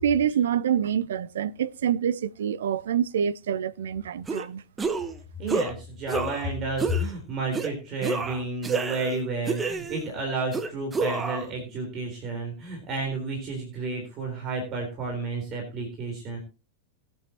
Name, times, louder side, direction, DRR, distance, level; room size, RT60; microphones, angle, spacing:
voice 1, 0.0-4.6, right 9 dB, 60° right, 0.6 m, -26 dB
sound 1, 4.3-4.5 4.8-5.1 5.5-5.7 6.1-6.5 6.8-7.1 7.5-7.7 8.0-9.2 9.5-10.1 10.5-11.5, right 4 dB, 15° right, 1.1 m, -29 dB
voice 2, 5.4-16.4, right 2 dB, 35° right, 4.0 m, -31 dB
20.5 x 7.9 x 2.9 m
figure-of-eight pair, 90°, 0 cm